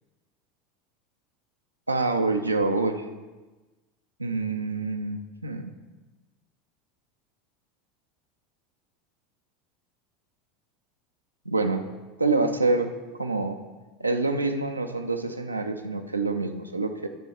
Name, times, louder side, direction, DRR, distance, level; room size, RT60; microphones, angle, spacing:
voice 1, 1.9-3.1 4.2-5.7 11.5-11.8 12.2-12.9 13.2-13.6 14.0-17.1, right 3 dB, 85° right, 5 dB, 0.5 m, -26 dB
9.9 x 6.2 x 4.3 m, 1.2 s
figure-of-eight pair, 75°, 0 cm